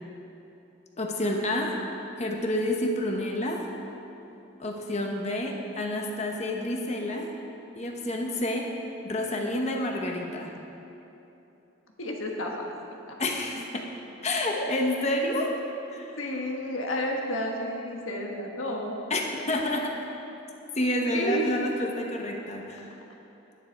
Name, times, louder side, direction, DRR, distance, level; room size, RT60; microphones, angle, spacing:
voice 1, 1.0-1.8 2.2-3.7 4.6-7.3 7.7-8.7 9.0-10.5 13.2-13.9 14.2-15.5 15.9-16.2 19.1-19.2 19.5-20.0 20.8-22.9, left 1 dB, 35° left, 1 dB, 0.8 m, -29 dB
voice 2, 12.0-12.7 13.1-13.2 14.6-14.7 16.2-18.9 21.1-21.5, equal, 90° left, 1 dB, 1.4 m, -31 dB
10.0 x 9.5 x 4.5 m, 3.0 s
head